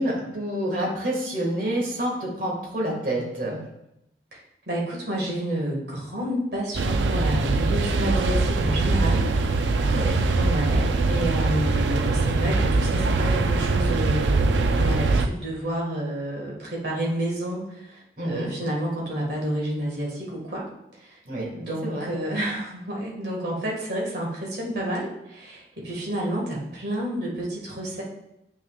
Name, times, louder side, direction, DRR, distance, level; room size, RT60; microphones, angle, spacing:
voice 1, 0.0-3.6 9.8-10.2 18.2-18.5 21.3-22.1, right 1 dB, 50° right, -2 dB, 2.0 m, -28 dB
voice 2, 4.3-9.3 10.4-20.7 21.0-28.0, right 1 dB, 70° right, -3 dB, 1.8 m, -30 dB
sound 1, 6.7-15.3, right 3 dB, 90° right, 0.5 m, -22 dB
8.7 x 6.2 x 2.4 m, 0.84 s
head